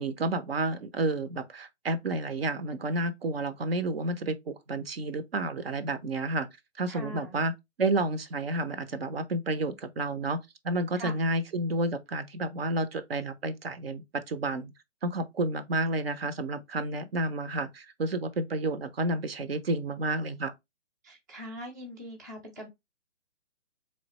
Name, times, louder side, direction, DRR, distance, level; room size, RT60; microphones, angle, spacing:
voice 1, 0.0-6.5 6.8-7.5 7.8-10.4 10.6-14.7 15.0-20.5, right 2 dB, 55° right, 0.7 m, -30 dB
voice 2, 6.9-7.4 11.0-11.2 21.0-22.7, equal, 15° right, 0.5 m, -42 dB
3.8 x 3.1 x 2.9 m
hypercardioid pair, 155°, 37 cm